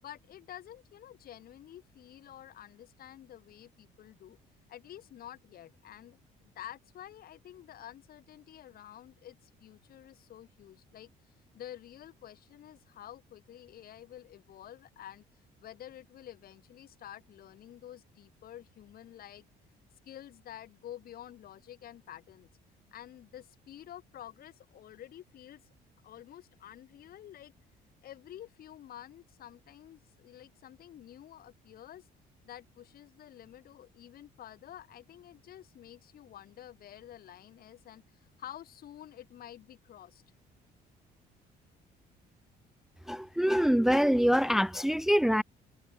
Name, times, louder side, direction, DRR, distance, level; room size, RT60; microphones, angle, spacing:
voice 1, 0.0-4.4 4.7-6.2 6.4-11.1 11.5-15.2 15.6-19.5 20.0-22.5 22.9-25.7 26.0-27.5 28.0-32.1 32.4-40.2, left 11 dB, 60° left, 8.0 m, -49 dB
voice 2, 43.1-45.4, equal, ahead, 0.6 m, -25 dB
cardioid pair, 110°, 17 cm